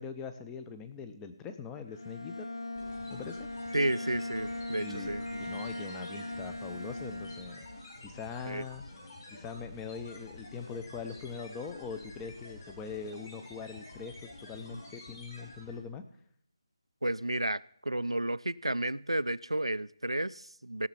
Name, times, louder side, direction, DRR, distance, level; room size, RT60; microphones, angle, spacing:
voice 1, 0.0-2.5 3.1-3.5 4.8-5.1 5.4-7.7 8.0-8.8 9.3-16.1, left 5 dB, 10° left, 8 dB, 0.6 m, -42 dB
Bowed string instrument, 1.9-8.0, left 2 dB, 70° left, 1.5 m, -40 dB
sound 1, 2.7-15.9, left 2 dB, 40° left, 4.5 m, -49 dB
voice 2, 3.7-5.4 8.4-8.6 14.7-14.8 17.0-20.9, right 1 dB, 85° right, 18 dB, 0.4 m, -32 dB
17.0 x 6.6 x 5.7 m, 0.65 s
figure-of-eight pair, 155°, 3 cm